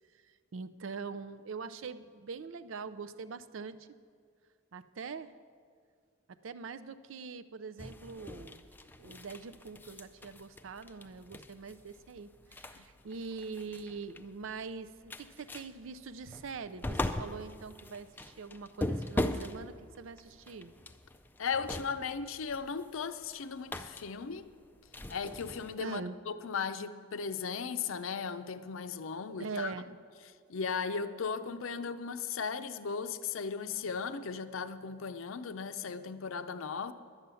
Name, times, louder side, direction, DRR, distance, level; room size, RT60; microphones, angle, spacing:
voice 1, 0.1-3.9 4.7-5.3 6.3-8.6 9.0-20.7 25.8-26.2 29.4-30.0, right 4 dB, 75° right, 0.5 m, -43 dB
sound 1, 7.8-25.7, left 1 dB, 10° left, 0.4 m, -41 dB
voice 2, 21.4-24.5 25.1-29.7 30.5-36.9, left 5 dB, 80° left, 0.6 m, -37 dB
11.5 x 9.1 x 6.9 m
head